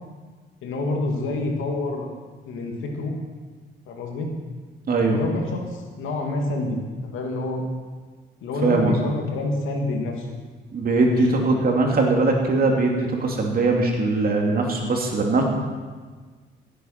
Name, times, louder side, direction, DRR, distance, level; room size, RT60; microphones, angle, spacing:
voice 1, 0.6-2.1 2.5-3.1 3.9-4.3 5.1-6.8 7.1-7.6 8.4-10.3 11.0-11.6, left 2 dB, 85° left, 1 dB, 2.5 m, -27 dB
voice 2, 4.9-5.2 8.6-9.0 10.7-15.4, right 3 dB, 50° right, 1 dB, 2.8 m, -21 dB
16.0 x 8.5 x 5.9 m, 1.4 s
cardioid pair, 90°, 20 cm